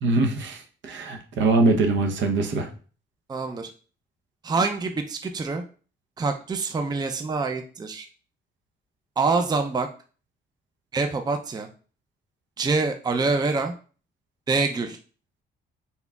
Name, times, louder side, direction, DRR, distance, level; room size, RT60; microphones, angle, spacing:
voice 1, 0.0-2.7, right 3 dB, 70° right, 4 dB, 0.8 m, -23 dB
voice 2, 3.3-3.7 4.4-5.6 6.2-8.1 9.2-9.9 10.9-11.7 12.6-13.7 14.5-15.0, right 4 dB, 20° right, 6 dB, 0.5 m, -25 dB
4.0 x 3.9 x 2.3 m, 0.38 s
cardioid pair, 90°, 20 cm